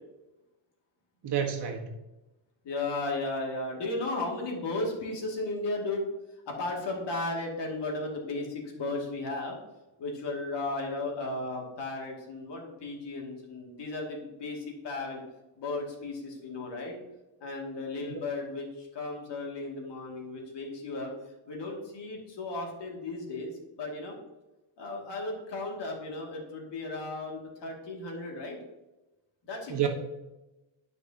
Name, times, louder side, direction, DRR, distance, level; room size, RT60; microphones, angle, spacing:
voice 1, 1.2-1.9 18.1-18.2 29.7-29.9, right 9 dB, 55° right, 2 dB, 1.4 m, -29 dB
voice 2, 2.6-6.1 6.5-9.6 10.0-15.2 15.6-17.0 17.4-21.1 21.5-24.1 24.8-28.6 29.5-29.9, left 2 dB, 60° left, -1 dB, 2.4 m, -35 dB
12.0 x 5.4 x 2.9 m, 1.0 s
cardioid pair, 125°, 48 cm